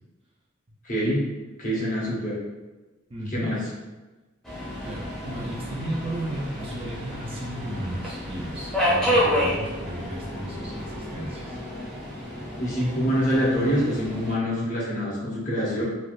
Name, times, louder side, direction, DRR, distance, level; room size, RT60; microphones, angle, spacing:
voice 1, 0.8-1.2 1.6-2.4 3.3-3.6 12.6-15.8, equal, 40° left, -5 dB, 0.9 m, -25 dB
voice 2, 3.1-3.5 4.8-11.6, right 1 dB, 25° right, -3 dB, 0.4 m, -34 dB
Subway metro underground, 4.4-14.3, equal, ahead, 0.7 m, -30 dB
3.2 x 2.4 x 2.5 m, 1.2 s
head